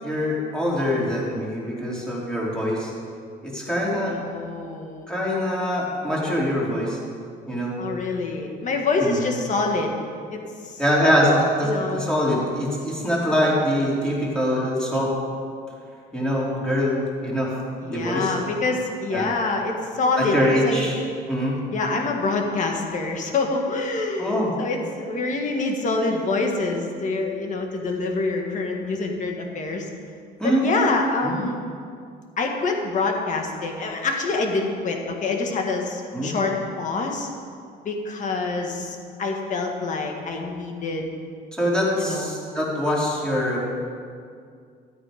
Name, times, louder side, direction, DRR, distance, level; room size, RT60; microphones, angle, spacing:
voice 1, 0.0-2.9 3.4-4.1 5.1-7.0 7.5-7.7 9.0-9.2 10.8-15.1 16.1-17.5 17.9-18.3 19.1-19.3 20.2-21.0 21.3-21.6 24.2-24.5 30.4-30.7 31.2-31.4 36.1-36.3 41.5-43.9, equal, 5° left, -5 dB, 3.3 m, -23 dB
voice 2, 4.0-5.1 7.8-9.9 10.3-10.8 11.6-12.1 17.8-20.9 21.7-29.9 30.6-31.6 32.4-37.3 37.8-41.1 42.0-42.3, left 3 dB, 50° left, 2 dB, 1.7 m, -26 dB
13.5 x 8.7 x 5.0 m, 2.2 s
cardioid pair, 110°, 17 cm